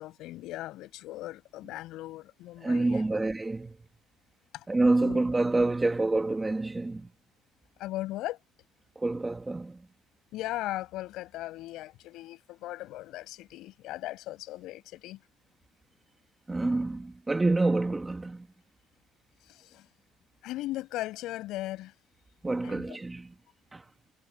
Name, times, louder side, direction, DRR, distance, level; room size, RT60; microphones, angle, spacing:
voice 1, 0.0-3.2 4.5-4.7 5.0-5.2 7.8-8.4 10.3-15.2 19.5-19.9 20.4-21.9 22.6-23.0, left 16 dB, 55° left, 6.9 m, -38 dB
voice 2, 2.6-3.7 4.7-7.1 9.0-9.8 16.5-18.5 22.4-23.3 23.7-23.8, right 2 dB, 10° right, 1.8 m, -27 dB
cardioid pair, 175°, 0 cm